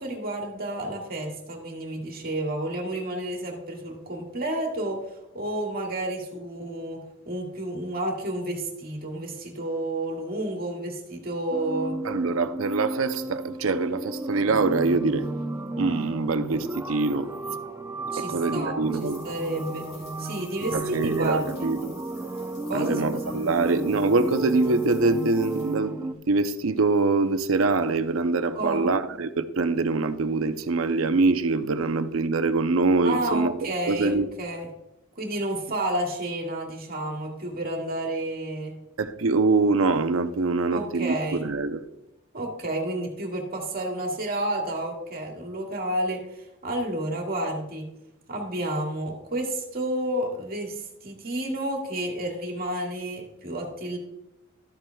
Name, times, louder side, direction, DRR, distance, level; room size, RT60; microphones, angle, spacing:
voice 1, 0.0-12.0 18.1-19.9 20.2-21.7 22.7-23.2 28.5-29.0 33.0-34.7 35.2-38.7 40.7-41.4 42.3-47.9 48.3-54.0, right 1 dB, 50° right, 1.9 m, -31 dB
sound 1, 11.5-26.1, right 2 dB, 15° right, 0.6 m, -34 dB
voice 2, 12.0-15.3 15.8-17.3 18.2-19.2 20.7-21.9 22.7-33.5 33.9-34.3 39.0-41.8, right 3 dB, 75° right, 0.6 m, -24 dB
sound 2, 18.8-25.8, left 3 dB, 70° left, 3.4 m, -50 dB
12.5 x 7.6 x 2.3 m
head